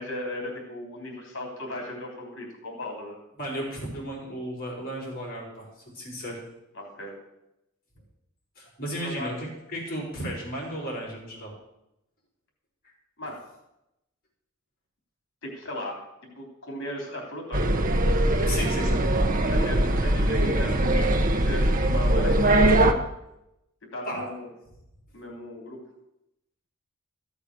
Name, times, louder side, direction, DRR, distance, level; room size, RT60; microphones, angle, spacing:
voice 1, 0.0-3.2 6.7-7.1 8.8-9.3 13.2-13.4 15.4-16.0 16.4-17.7 19.5-21.0 21.3-22.5 23.9-24.5 25.1-25.8, left 1 dB, 65° left, 1 dB, 3.4 m, -36 dB
voice 2, 3.4-5.7 5.9-6.4 8.6-11.5 18.5-19.1 24.0-24.2, equal, 45° left, -2 dB, 4.9 m, -34 dB
sound 1, 17.5-22.9, right 1 dB, 40° right, 1.0 m, -21 dB
15.0 x 7.2 x 6.7 m, 0.87 s
head